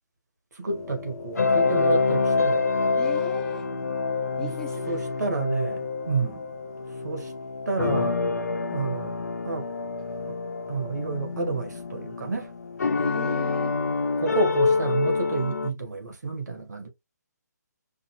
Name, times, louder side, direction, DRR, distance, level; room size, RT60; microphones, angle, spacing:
voice 1, 0.5-2.7 4.4-4.5 4.9-6.3 7.0-7.3 7.7-8.2 8.7-9.1 9.4-9.7 10.3-10.4 10.7-12.5 14.2-16.9, right 4 dB, 70° right, 1.5 m, -29 dB
sound 1, 0.7-15.7, left 4 dB, 65° left, 0.7 m, -27 dB
voice 2, 3.0-3.7 4.4-5.1 6.2-6.4 13.0-13.8, left 5 dB, 5° left, 0.6 m, -41 dB
5.3 x 2.7 x 2.3 m
figure-of-eight pair, 140°, 10 cm